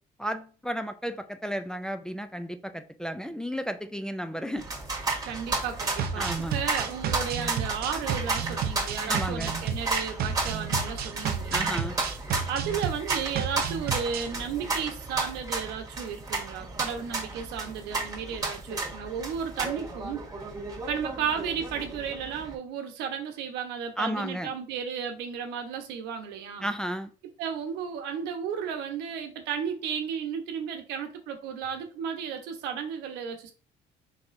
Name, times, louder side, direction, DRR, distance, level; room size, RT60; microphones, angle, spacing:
voice 1, 0.2-4.6 6.2-6.6 9.1-9.5 11.5-12.0 24.0-24.5 26.6-27.1, equal, 5° left, 0.4 m, -33 dB
sound 1, 4.6-22.5, right 3 dB, 20° right, 1.4 m, -33 dB
voice 2, 5.2-11.8 12.5-20.2 20.8-26.6 27.4-33.5, right 7 dB, 90° right, 1.0 m, -34 dB
sound 2, 6.0-14.3, right 7 dB, 65° right, 0.6 m, -32 dB
4.3 x 4.2 x 2.6 m
cardioid pair, 110°, 17 cm